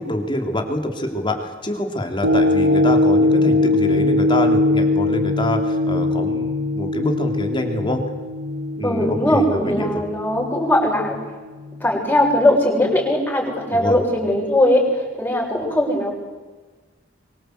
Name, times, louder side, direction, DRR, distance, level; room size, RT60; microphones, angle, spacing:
voice 1, 0.0-8.0 8.8-10.0 13.7-14.0, left 1 dB, 25° left, 4 dB, 3.4 m, -25 dB
sound 1, 2.2-10.6 11.1-11.2, left 2 dB, 85° right, 2.3 m, -20 dB
voice 2, 8.8-11.2 11.8-14.9 15.2-16.1, left 1 dB, 10° left, -1 dB, 6.9 m, -19 dB
24.5 x 23.5 x 8.1 m, 1.3 s
head